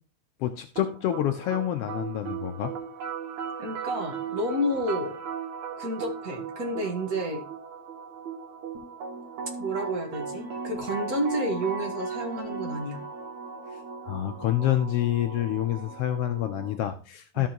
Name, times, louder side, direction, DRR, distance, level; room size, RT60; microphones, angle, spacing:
voice 1, 0.4-2.7 14.0-17.5, left 12 dB, 85° left, 7 dB, 1.3 m, -27 dB
sound 1, 0.8-16.8, right 5 dB, 75° right, 2.7 m, -37 dB
voice 2, 3.6-5.2 5.8-7.4 9.6-13.0 17.3-17.5, equal, 40° right, 2 dB, 1.4 m, -30 dB
13.5 x 5.5 x 2.9 m, 0.36 s
omnidirectional pair, 3.3 m